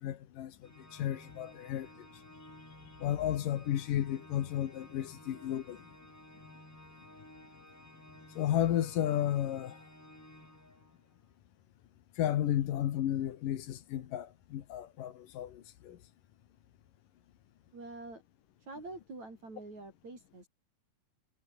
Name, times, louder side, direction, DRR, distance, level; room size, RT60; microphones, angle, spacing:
voice 1, 0.0-2.0 3.0-5.8 8.4-9.8 12.2-16.0, left 11 dB, 70° left, 3.0 m, -33 dB
Organ, 0.6-11.2, equal, 5° left, 4.4 m, -55 dB
voice 2, 17.7-18.2 18.7-20.5, right 2 dB, 50° right, 9.3 m, -46 dB
omnidirectional pair, 4.2 m